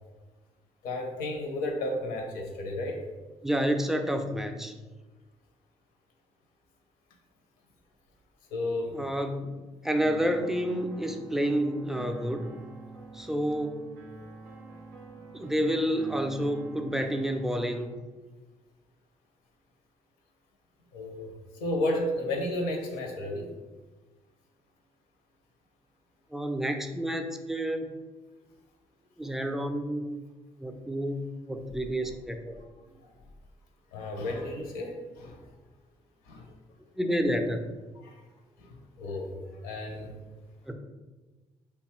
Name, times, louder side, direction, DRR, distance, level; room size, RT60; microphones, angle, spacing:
voice 1, 0.8-3.0 8.5-9.0 20.9-21.3 21.6-23.5 33.9-35.4 36.3-36.4 38.0-38.2 38.6-38.7 39.0-39.3 39.6-40.1, left 1 dB, 80° left, 2 dB, 0.6 m, -32 dB
voice 2, 3.4-4.7 8.9-9.6 9.8-12.5 13.1-14.0 15.3-17.9 26.3-27.9 29.2-30.1 30.6-32.5 37.0-37.6 40.7-40.8, equal, 5° right, 5 dB, 0.3 m, -29 dB
sound 1, 10.0-18.0, right 2 dB, 90° right, 0.5 m, -47 dB
2.8 x 2.2 x 3.0 m, 1.2 s
hypercardioid pair, 55°, 15 cm